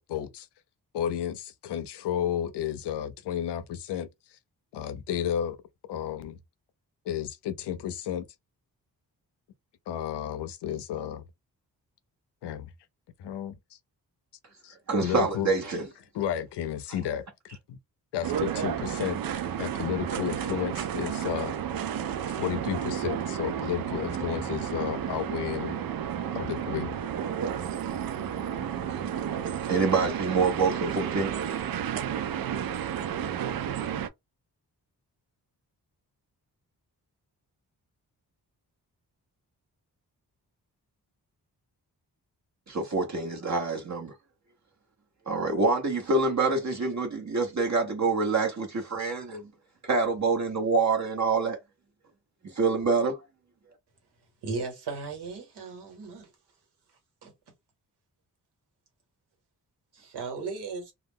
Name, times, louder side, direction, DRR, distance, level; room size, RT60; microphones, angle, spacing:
voice 1, 0.1-0.5 0.9-4.1 4.7-5.6 5.9-6.4 7.1-8.2 9.9-11.2 12.4-12.7 13.2-13.8 14.6-14.7 15.0-15.5 16.1-17.8 18.1-21.5 22.3-25.8 26.3-27.0, left 10 dB, 85° left, 0.5 m, -32 dB
voice 2, 14.9-15.9 29.7-31.3 42.7-44.1 45.3-49.5 49.8-51.6 52.4-53.2, right 3 dB, 45° right, 0.9 m, -26 dB
sound 1, 18.2-34.1, right 9 dB, 60° right, 0.5 m, -32 dB
voice 3, 54.4-56.3 57.2-57.3 59.9-60.9, right 4 dB, 85° right, 1.3 m, -36 dB
2.3 x 2.1 x 3.5 m
cardioid pair, 50°, 40 cm